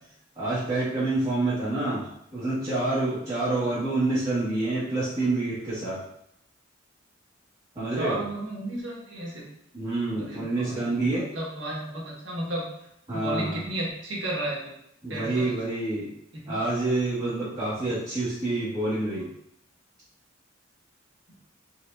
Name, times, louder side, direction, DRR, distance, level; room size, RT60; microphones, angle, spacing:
voice 1, 0.3-6.0 7.7-8.2 9.7-11.3 13.1-13.6 15.0-16.1 16.5-19.3, right 2 dB, 20° right, -13 dB, 1.5 m, -27 dB
voice 2, 8.0-9.4 10.2-12.6 13.1-14.6 15.1-15.6 16.3-16.6, right 1 dB, 70° right, -4 dB, 1.4 m, -33 dB
4.6 x 3.7 x 2.5 m, 0.76 s
head